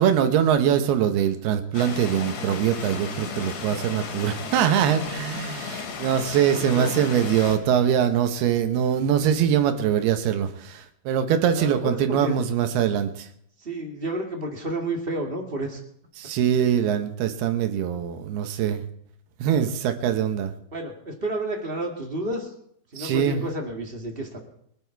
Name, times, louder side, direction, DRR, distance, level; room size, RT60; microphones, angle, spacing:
voice 1, 0.0-13.1 16.2-18.8 19.4-20.5 23.0-23.4, right 9 dB, 70° right, 7 dB, 3.0 m, -23 dB
sound 1, 1.7-7.6, left 5 dB, 85° left, 4.4 m, -34 dB
voice 2, 6.5-7.1 11.5-12.4 13.6-15.8 20.7-22.5 22.9-24.4, right 1 dB, 25° right, 1 dB, 1.1 m, -31 dB
24.5 x 9.5 x 4.7 m, 0.70 s
omnidirectional pair, 5.0 m